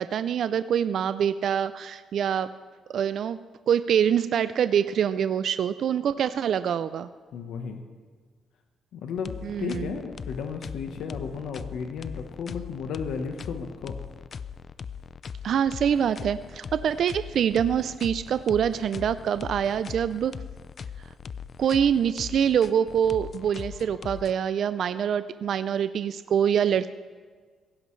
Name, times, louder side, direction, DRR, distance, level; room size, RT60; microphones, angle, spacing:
voice 1, 0.0-2.5 2.9-3.4 3.7-7.1 9.4-9.9 15.4-20.4 21.6-26.9, right 8 dB, 60° right, 13 dB, 0.4 m, -25 dB
voice 2, 7.3-7.8 8.9-14.0, left 6 dB, 75° left, 5 dB, 1.1 m, -34 dB
sound 1, 9.2-24.3, left 6 dB, 40° left, 0.4 m, -40 dB
16.5 x 16.0 x 3.2 m, 1.5 s
cardioid pair, 130°, 0 cm